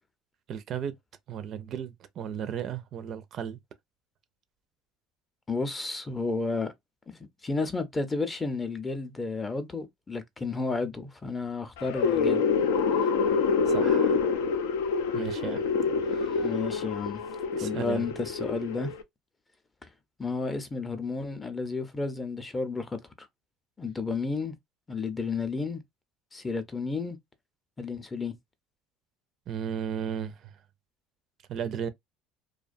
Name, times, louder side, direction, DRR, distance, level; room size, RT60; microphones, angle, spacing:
voice 1, 0.5-1.0 1.3-3.6 13.0-13.1 13.7-14.2 15.1-15.6 16.1-16.5 17.6-18.0 29.5-30.5 31.5-31.9, right 8 dB, 50° right, 0.4 m, -35 dB
voice 2, 5.5-6.7 7.4-12.4 16.4-17.2 17.6-18.9 20.2-23.3 23.8-24.5 24.9-25.8 26.3-27.2 27.8-28.3, left 4 dB, 20° left, 0.5 m, -32 dB
sound 1, 11.8-19.0, left 5 dB, 90° left, 0.4 m, -26 dB
2.4 x 2.1 x 2.5 m
supercardioid pair, 105°, 0 cm